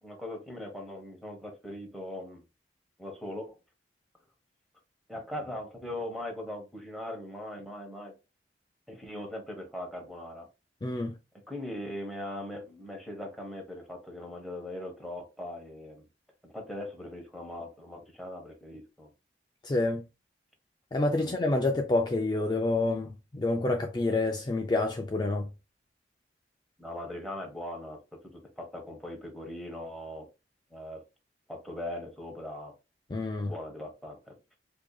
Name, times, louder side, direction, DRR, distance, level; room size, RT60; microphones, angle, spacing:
voice 1, 0.0-2.4 3.0-3.6 5.1-8.1 8.9-10.5 11.5-16.0 16.4-19.1 21.2-21.3 26.8-30.3 30.7-31.0 31.5-32.7 33.4-34.4, left 1 dB, ahead, 1.0 m, -40 dB
voice 2, 10.8-11.1 19.6-20.0 20.9-25.5 33.1-33.5, left 2 dB, 25° left, 0.4 m, -28 dB
4.6 x 2.7 x 2.3 m
head